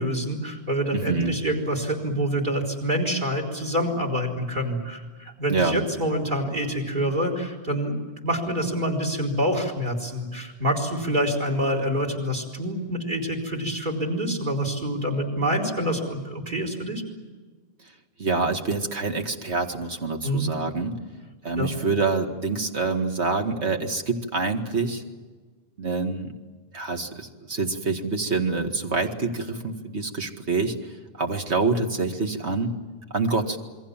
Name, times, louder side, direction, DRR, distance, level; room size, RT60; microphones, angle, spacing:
voice 1, 0.0-17.0 20.2-20.5 21.6-21.7, equal, 50° right, 4 dB, 4.5 m, -26 dB
voice 2, 0.9-1.4 5.5-5.8 18.2-21.0 21.4-25.0 25.8-26.3 26.7-32.7 33.1-33.6, right 3 dB, 80° right, 4 dB, 2.3 m, -26 dB
28.0 x 22.0 x 7.4 m, 1.4 s
omnidirectional pair, 1.1 m